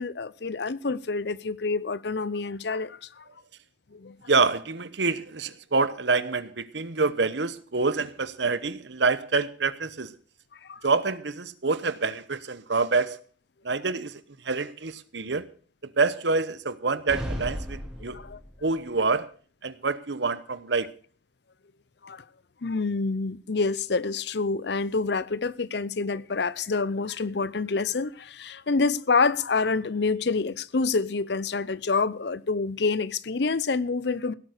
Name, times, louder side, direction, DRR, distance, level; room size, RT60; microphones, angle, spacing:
voice 1, 0.0-3.2 3.9-4.2 10.6-10.8 18.1-18.4 22.0-22.2 22.6-34.3, left 4 dB, 60° left, 0.6 m, -27 dB
voice 2, 4.3-10.2 10.8-13.2 13.6-15.5 15.8-18.2 18.6-19.3 19.6-20.9, right 4 dB, 70° right, 1.0 m, -27 dB
sound 1, 17.1-18.7, equal, 5° right, 2.7 m, -35 dB
17.0 x 8.2 x 6.6 m
head